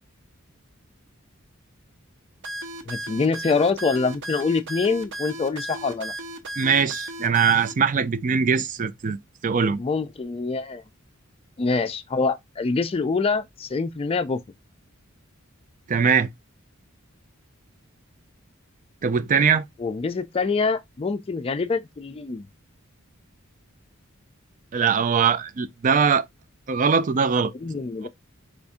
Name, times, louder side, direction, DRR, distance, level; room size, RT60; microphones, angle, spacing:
sound 1, 2.4-7.7, right 1 dB, 60° right, 0.8 m, -35 dB
voice 1, 2.9-6.1 9.8-10.8 11.6-14.4 19.8-22.5 27.6-28.1, left 4 dB, 25° left, 0.4 m, -25 dB
voice 2, 6.6-9.8 15.9-16.3 19.0-19.6 24.7-26.3 26.7-27.5, right 6 dB, 40° right, 0.4 m, -21 dB
4.9 x 2.7 x 3.5 m
head